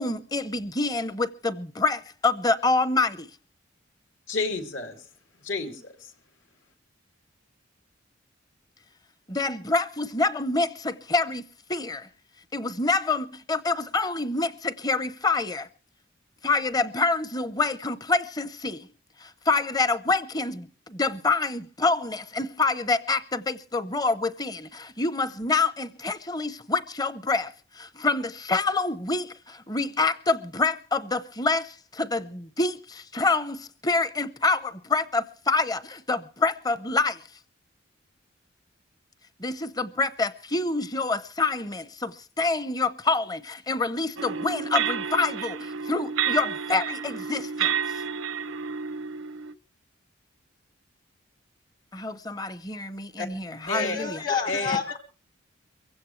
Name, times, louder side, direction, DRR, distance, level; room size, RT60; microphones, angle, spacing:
voice 1, 0.0-3.3 9.3-11.4 11.7-12.1 12.5-15.7 16.4-18.9 19.2-37.2 39.4-47.7 51.9-54.2, left 3 dB, 20° left, 0.7 m, -27 dB
voice 2, 4.3-5.0 5.4-6.1 53.2-53.3 53.7-54.0 54.5-54.8, left 3 dB, 75° left, 2.7 m, -30 dB
sound 1, 44.2-49.5, right 7 dB, 85° right, 0.7 m, -30 dB
voice 3, 53.7-55.0, left 5 dB, 45° left, 1.6 m, -29 dB
23.0 x 16.0 x 3.2 m
head